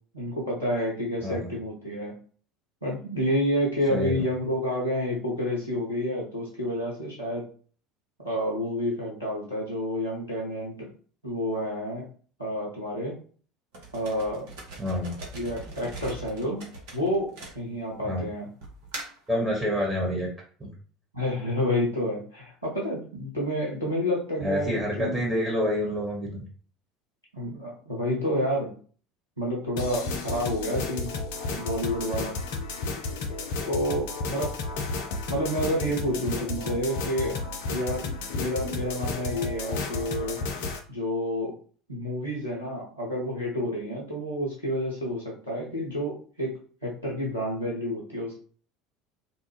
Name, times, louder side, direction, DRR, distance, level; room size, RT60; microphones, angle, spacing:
voice 1, 0.1-2.1 2.8-7.4 8.2-10.9 11.2-12.0 12.4-13.2 13.9-14.5 15.3-16.6 16.9-18.5 21.1-25.2 27.3-28.7 29.4-31.1 31.5-32.4 33.7-34.5 35.3-37.4 37.7-38.1 38.3-40.4 40.9-41.5 41.9-46.5 46.8-48.4, equal, 90° right, -4 dB, 0.8 m, -29 dB
voice 2, 3.9-4.2 14.8-15.2 18.0-18.2 19.3-20.3 20.6-20.7 24.4-26.5, left 1 dB, 10° right, -3 dB, 1.2 m, -27 dB
sound 1, 13.7-18.0 18.6-19.3, right 2 dB, 60° right, 0.9 m, -41 dB
sound 2, 29.8-40.8, left 3 dB, 60° left, 0.4 m, -32 dB
2.5 x 2.1 x 3.2 m, 0.43 s
figure-of-eight pair, 65°, 0 cm